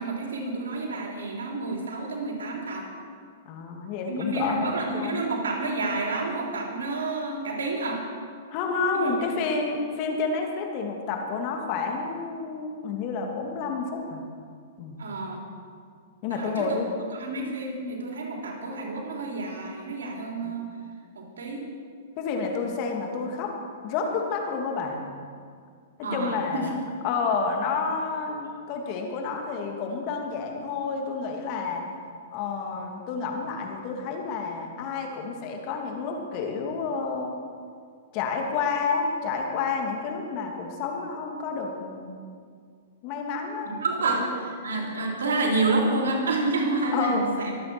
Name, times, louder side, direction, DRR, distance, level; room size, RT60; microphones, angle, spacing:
voice 1, 0.0-2.9 4.1-8.1 8.9-9.1 15.0-15.4 16.3-16.8 17.2-20.8 21.2-21.7 26.0-26.6 43.7-47.5, right 2 dB, 85° right, 1 dB, 3.4 m, -29 dB
voice 2, 3.5-5.2 8.5-14.2 14.8-15.0 16.2-16.9 20.4-20.5 22.2-23.5 23.8-25.0 26.1-26.7 27.0-31.8 32.3-37.3 38.1-42.2 43.0-43.7 44.0-44.2 44.8-44.9 46.9-47.2, left 4 dB, 45° left, 2 dB, 2.8 m, -29 dB
23.5 x 8.6 x 6.2 m, 2.1 s
hypercardioid pair, 125°, 0 cm